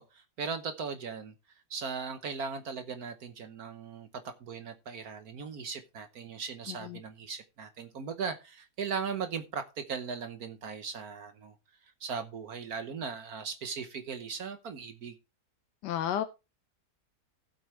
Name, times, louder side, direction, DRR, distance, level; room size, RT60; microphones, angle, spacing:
voice 1, 0.0-1.3 1.7-11.5 12.0-15.1, right 6 dB, 65° right, 1.4 m, -38 dB
voice 2, 6.7-7.0 15.8-16.2, left 10 dB, 85° left, 1.4 m, -32 dB
15.0 x 8.1 x 3.2 m
omnidirectional pair, 1.8 m